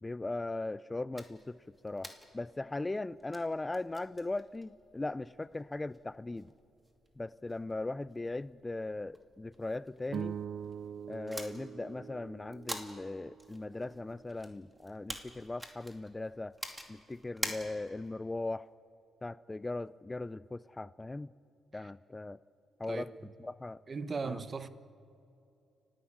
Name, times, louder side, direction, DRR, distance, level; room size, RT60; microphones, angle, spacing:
voice 1, 0.0-2.1 2.3-6.5 7.2-10.4 11.1-16.5 16.9-18.7 19.2-21.3 21.7-22.4 22.8-23.1 23.4-23.8 24.2-24.4, left 2 dB, 15° left, 0.4 m, -39 dB
sound 1, 1.1-18.1, right 1 dB, 10° right, 2.5 m, -48 dB
sound 2, 10.1-14.6, right 8 dB, 60° right, 0.4 m, -44 dB
voice 2, 23.9-24.7, right 4 dB, 35° right, 1.1 m, -38 dB
30.0 x 11.5 x 8.6 m
cardioid pair, 90°, 0 cm